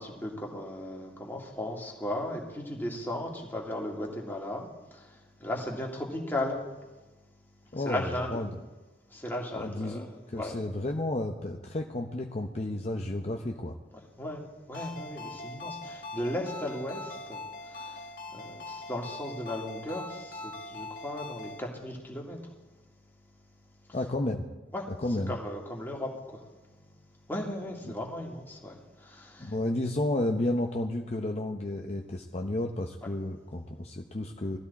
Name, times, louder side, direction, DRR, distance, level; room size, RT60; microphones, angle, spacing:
voice 1, 0.0-6.6 7.8-8.5 9.1-10.1 10.3-10.6 13.9-14.4 14.7-22.5 24.7-24.8 25.3-27.0 27.3-29.5, left 1 dB, 10° left, -1 dB, 2.1 m, -36 dB
voice 2, 7.7-8.5 9.5-13.8 23.9-24.5 25.0-25.3 29.4-34.6, left 1 dB, 40° left, 2 dB, 0.7 m, -32 dB
Ringtone, 14.7-21.6, left 2 dB, 55° left, 1.3 m, -42 dB
17.5 x 13.0 x 4.2 m, 1.2 s
head